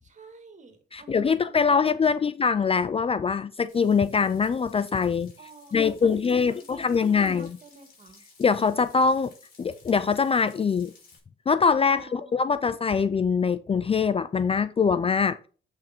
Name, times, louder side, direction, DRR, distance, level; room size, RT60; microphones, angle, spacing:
voice 1, 0.0-2.3 5.4-8.2 11.8-12.4, right 3 dB, 35° right, 2.4 m, -49 dB
voice 2, 0.9-5.3 5.7-7.6 8.4-9.3 9.6-10.9 11.5-15.4, left 5 dB, 30° left, 0.4 m, -23 dB
Frying (food), 3.7-11.2, left 4 dB, 50° left, 5.1 m, -56 dB
8.7 x 6.0 x 4.4 m
cardioid pair, 90°, 20 cm